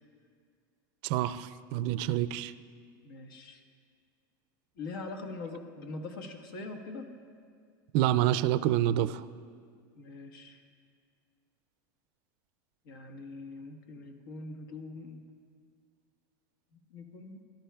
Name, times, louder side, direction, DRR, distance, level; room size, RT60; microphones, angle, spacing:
voice 1, 1.0-2.5 7.9-9.2, right 12 dB, 50° right, 14 dB, 0.3 m, -27 dB
voice 2, 3.0-3.6 4.8-7.1 10.0-10.6 12.8-15.2 16.9-17.4, left 3 dB, 90° left, 4 dB, 1.3 m, -42 dB
17.0 x 12.0 x 2.3 m, 2.1 s
supercardioid pair, 150°, 11 cm